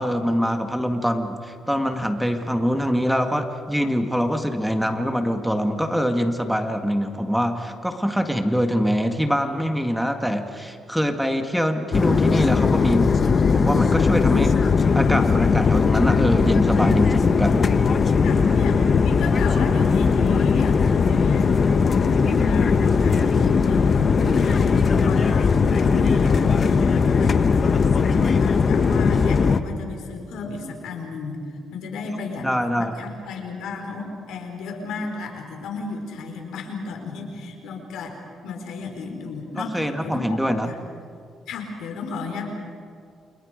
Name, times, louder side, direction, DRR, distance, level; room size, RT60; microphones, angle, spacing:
voice 1, 0.0-13.2 13.5-17.7 32.4-33.0 39.6-40.7, equal, ahead, 5 dB, 1.9 m, -24 dB
sound 1, 11.9-29.6, left 5 dB, 45° left, 1.1 m, -19 dB
voice 2, 18.2-21.5 21.8-40.8 41.5-42.5, left 3 dB, 85° left, 3 dB, 4.7 m, -34 dB
29.0 x 28.5 x 5.2 m, 2.4 s
cardioid pair, 90°, 0 cm